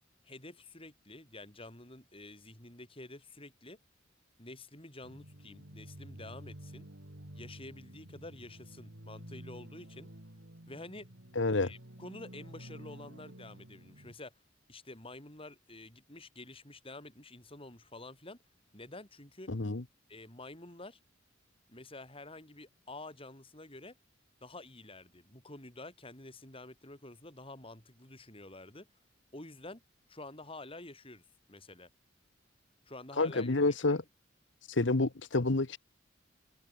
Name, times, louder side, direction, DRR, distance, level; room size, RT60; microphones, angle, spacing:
voice 1, 0.2-3.8 4.4-6.9 7.3-10.1 10.7-11.1 11.6-14.3 14.7-18.4 18.7-19.5 20.1-21.0 21.7-24.0 24.4-28.9 29.3-29.8 30.1-31.2 31.5-31.9 32.9-33.6 33.9-34.0, left 2 dB, 30° left, 5.5 m, -49 dB
sound 1, 5.0-14.1, right 1 dB, 65° right, 3.2 m, -51 dB
voice 2, 11.3-11.7 19.5-19.8 33.2-34.0 34.7-35.8, left 2 dB, 65° left, 1.1 m, -29 dB
head